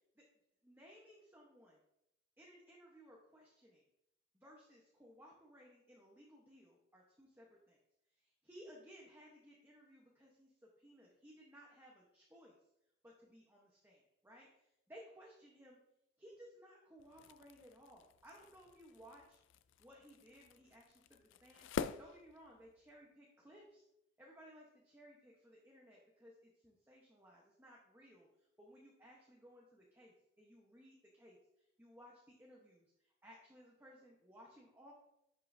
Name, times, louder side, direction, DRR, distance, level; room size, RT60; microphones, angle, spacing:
voice 1, 0.6-1.8 2.4-3.8 4.3-7.8 8.2-12.6 13.0-15.8 16.2-19.4 19.8-23.9 24.2-34.9, equal, 10° right, -3 dB, 1.0 m, -60 dB
sound 1, 17.0-23.0, left 6 dB, 70° left, 0.3 m, -47 dB
11.0 x 5.6 x 2.7 m, 0.81 s
head